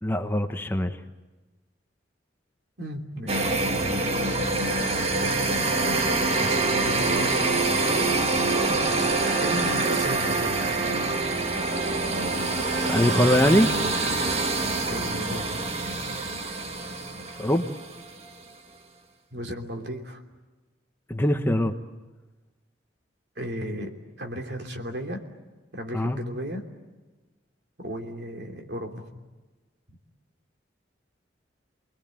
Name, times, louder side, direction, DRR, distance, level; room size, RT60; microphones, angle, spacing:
voice 1, 0.0-1.0 7.8-8.0 12.8-13.7 17.4-17.7 21.1-21.8 25.9-26.2, left 1 dB, 10° left, 6 dB, 1.1 m, -23 dB
voice 2, 2.8-3.6 6.4-7.2 8.7-10.8 14.3-14.4 14.9-15.5 19.3-20.2 23.4-25.2 25.7-26.7 27.8-29.1, equal, 60° right, 4 dB, 3.1 m, -35 dB
sound 1, 3.3-18.0, right 3 dB, 35° right, 1.7 m, -25 dB
29.5 x 20.5 x 9.0 m, 1.2 s
head